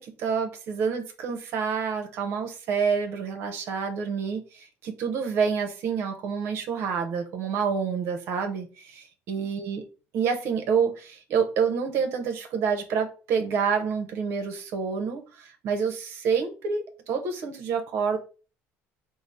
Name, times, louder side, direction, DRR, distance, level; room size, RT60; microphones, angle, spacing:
voice 1, 0.0-9.8 10.1-18.2, right 6 dB, 55° right, 0.8 m, -28 dB
4.7 x 2.0 x 4.1 m
cardioid pair, 160°, 5 cm